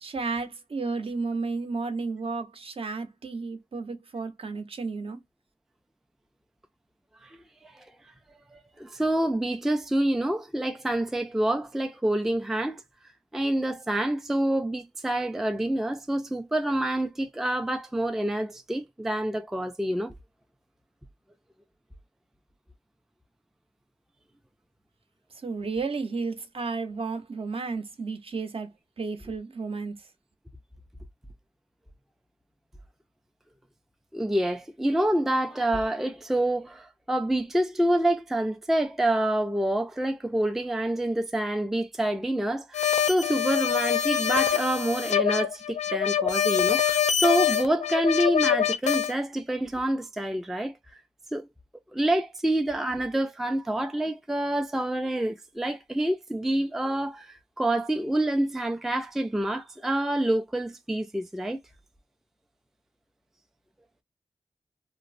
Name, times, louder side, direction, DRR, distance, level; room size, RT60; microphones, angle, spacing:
voice 1, 0.0-5.2 25.4-28.7 29.0-29.9, right 4 dB, 55° right, 0.7 m, -32 dB
voice 2, 8.5-12.8 13.3-20.1 34.1-51.0 51.3-51.5 51.9-61.6, right 1 dB, 5° right, 0.3 m, -27 dB
sound 1, 42.7-49.1, left 9 dB, 85° left, 0.5 m, -25 dB
2.9 x 2.0 x 2.4 m
wide cardioid pair, 115°, 12 cm